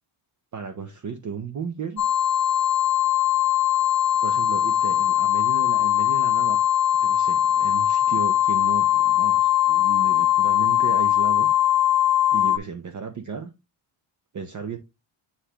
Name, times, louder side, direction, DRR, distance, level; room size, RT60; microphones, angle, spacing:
voice 1, 0.5-2.0 4.2-6.6 7.0-11.5 12.3-13.5 14.3-14.8, right 6 dB, 35° right, 0.7 m, -34 dB
sound 1, 2.0-12.6, left 12 dB, 35° left, 0.5 m, -20 dB
9.8 x 3.4 x 2.9 m
wide cardioid pair, 145°, 50 cm